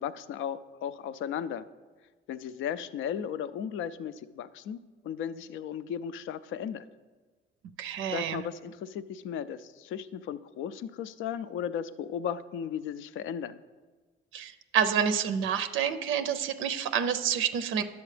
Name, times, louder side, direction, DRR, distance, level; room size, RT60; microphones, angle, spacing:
voice 1, 0.0-1.7 2.3-4.8 5.0-6.9 8.1-13.6, left 8 dB, 80° left, 14 dB, 0.4 m, -35 dB
voice 2, 7.8-8.4 14.3-17.8, right 8 dB, 85° right, 10 dB, 0.5 m, -28 dB
11.0 x 6.9 x 3.3 m, 1.4 s
cardioid pair, 90°, 20 cm